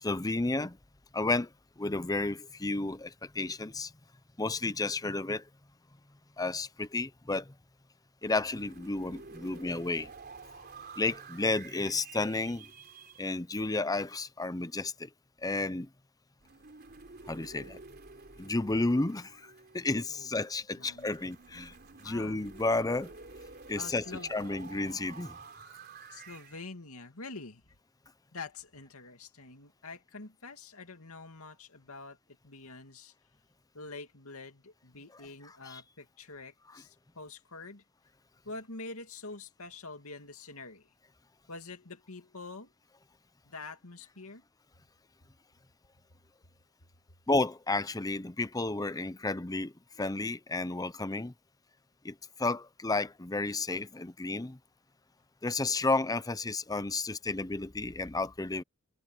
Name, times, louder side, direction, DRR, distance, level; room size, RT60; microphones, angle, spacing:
voice 1, 0.0-0.8 1.1-1.5 1.8-3.9 4.4-5.4 6.4-7.5 8.2-10.1 11.0-12.7 13.2-15.1 15.4-15.9 17.3-17.8 18.4-19.4 19.7-21.7 22.0-23.1 23.7-24.0 24.3-25.4 35.6-35.8 47.3-49.7 50.0-51.3 52.0-54.6 55.4-58.6, left 2 dB, 15° left, 0.7 m, -32 dB
sound 1, 8.2-13.3 16.4-20.2 20.9-26.6, right 4 dB, 45° right, 3.5 m, -50 dB
voice 2, 20.7-21.3 22.0-22.4 23.8-24.4 26.1-27.6 28.3-32.2 32.4-33.1 33.7-37.8 38.4-40.9 41.5-42.7 43.4-44.4, left 3 dB, 80° left, 2.6 m, -46 dB
head